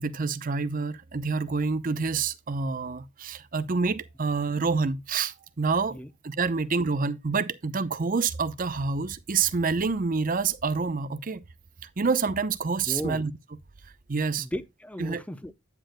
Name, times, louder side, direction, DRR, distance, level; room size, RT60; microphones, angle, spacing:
voice 1, 0.0-6.0 6.2-11.4 12.0-13.3 14.1-14.4 15.0-15.2, right 4 dB, 40° right, 0.7 m, -27 dB
voice 2, 12.9-13.2 14.4-15.5, equal, 5° left, 0.7 m, -35 dB
9.6 x 8.9 x 2.2 m
head